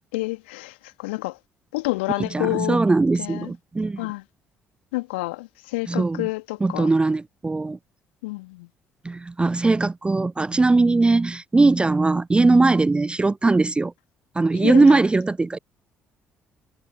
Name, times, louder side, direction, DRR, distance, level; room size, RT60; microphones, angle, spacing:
voice 1, 0.1-1.4 1.7-2.8 3.2-3.5 4.0-4.2 4.9-6.9 8.2-8.7 14.5-15.0, left 23 dB, 70° left, 2.8 m, -29 dB
voice 2, 2.3-4.1 5.9-6.3 6.6-7.8 9.0-13.9 14.4-15.6, right 3 dB, 15° right, 0.4 m, -20 dB
figure-of-eight pair, 50°, 6 cm